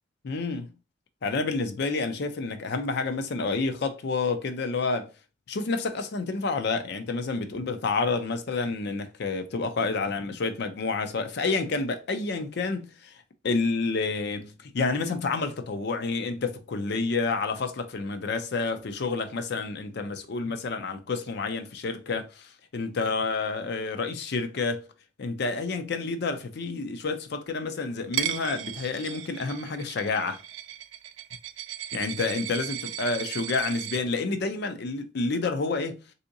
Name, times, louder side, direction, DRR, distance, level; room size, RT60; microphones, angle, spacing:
voice 1, 0.2-0.7 1.2-5.1 5.5-13.1 13.4-24.8 25.2-30.4 31.9-36.0, left 3 dB, 55° left, 0.4 m, -29 dB
Coin (dropping), 28.1-34.0, right 11 dB, 65° right, 0.3 m, -36 dB
3.5 x 2.8 x 2.6 m
head